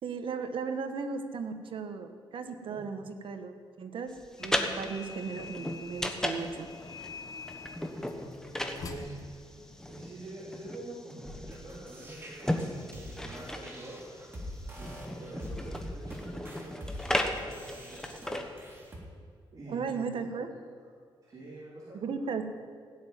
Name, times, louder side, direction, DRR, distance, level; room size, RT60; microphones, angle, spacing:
voice 1, 0.0-4.1 4.4-6.7 19.7-20.5 21.9-22.4, right 5 dB, 65° right, 7 dB, 1.3 m, -36 dB
sound 1, 4.2-18.8, left 1 dB, 5° left, 1.3 m, -36 dB
sound 2, 4.4-10.2, left 4 dB, 40° left, 1.3 m, -46 dB
voice 2, 8.1-9.4 9.9-14.0 14.8-18.5 19.5-20.2 21.2-22.1, right 2 dB, 40° right, -6 dB, 3.8 m, -46 dB
sound 3, 11.2-19.0, equal, 25° right, 3.3 m, -44 dB
16.5 x 7.3 x 9.3 m, 2.1 s
cardioid pair, 110°, 10 cm